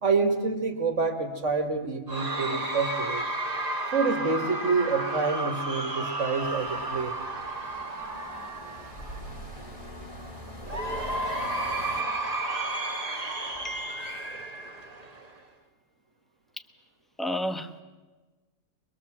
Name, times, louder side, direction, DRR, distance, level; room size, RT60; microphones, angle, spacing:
voice 1, 0.0-3.2 3.9-7.1, right 4 dB, 50° right, 5 dB, 2.3 m, -27 dB
Cheering / Crowd, 2.1-9.4 10.7-15.4, right 2 dB, 25° right, 1.9 m, -32 dB
sound 1, 6.4-12.0, equal, 20° left, 3.2 m, -43 dB
voice 2, 13.6-14.9 17.2-17.7, left 1 dB, ahead, 8 dB, 0.9 m, -34 dB
24.5 x 22.0 x 7.4 m, 1.2 s
omnidirectional pair, 1.7 m